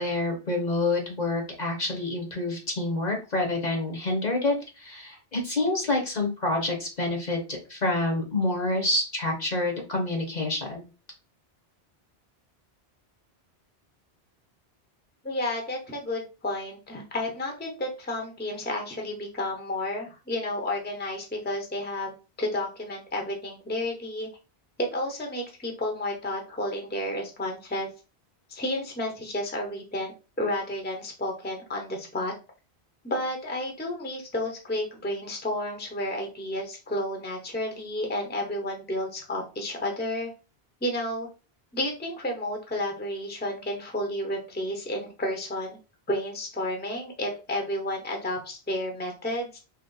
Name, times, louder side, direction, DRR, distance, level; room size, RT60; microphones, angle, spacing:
voice 1, 0.0-10.8, left 2 dB, 45° left, 2 dB, 1.0 m, -27 dB
voice 2, 15.2-24.3 24.9-27.9 28.5-32.3 33.0-40.3 40.8-41.3 41.7-45.8 46.1-49.6, left 1 dB, 10° left, 2 dB, 0.8 m, -31 dB
3.0 x 2.9 x 3.9 m, 0.32 s
omnidirectional pair, 1.1 m